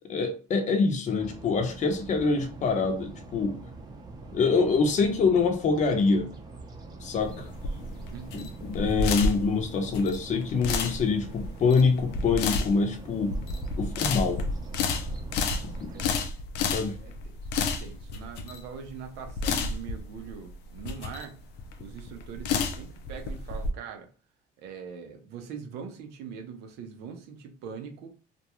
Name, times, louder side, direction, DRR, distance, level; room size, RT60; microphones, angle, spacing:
voice 1, 0.1-3.6 4.3-6.3 7.0-7.5 8.6-13.4 13.8-14.4 16.6-17.0, left 4 dB, 45° left, 0.7 m, -25 dB
sound 1, 1.2-16.3, right 3 dB, 25° right, 0.6 m, -44 dB
sound 2, 7.2-23.7, left 4 dB, 90° left, 0.5 m, -31 dB
voice 2, 8.1-8.5 15.9-16.2 16.8-21.3 21.8-24.1 24.6-28.1, right 6 dB, 90° right, 0.7 m, -42 dB
2.5 x 2.2 x 2.9 m
cardioid pair, 110°, 17 cm